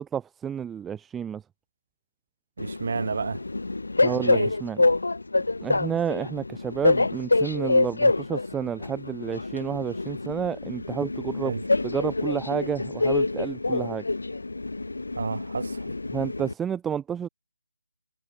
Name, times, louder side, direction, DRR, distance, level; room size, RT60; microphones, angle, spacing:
voice 1, 0.0-1.4 4.0-4.8 5.6-11.5 11.8-14.0 16.1-17.3, right 8 dB, 5° right, 0.8 m, -30 dB
Train, 2.6-16.5, left 2 dB, 70° left, 0.5 m, -26 dB
voice 2, 2.6-3.4 4.0-4.5 11.4-11.6 15.2-15.9, right 5 dB, 50° right, 6.6 m, -31 dB
figure-of-eight pair, 155°, 0 cm